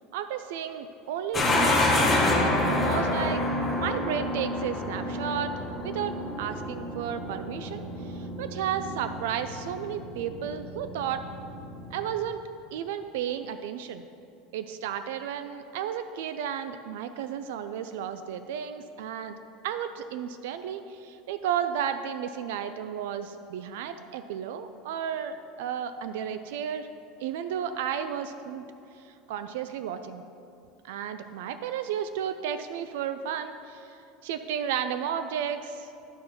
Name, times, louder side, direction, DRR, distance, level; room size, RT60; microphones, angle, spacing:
voice 1, 0.1-1.9 2.6-3.4 3.7-5.5 5.8-11.2 11.9-12.4 12.7-14.0 14.5-19.4 19.6-26.9 27.2-28.6 29.0-30.2 30.8-35.9, right 9 dB, 80° right, 10 dB, 0.3 m, -33 dB
sound 1, 1.3-12.1, left 1 dB, 10° left, 1.0 m, -28 dB
10.0 x 4.4 x 5.7 m, 2.6 s
supercardioid pair, 165°, 0 cm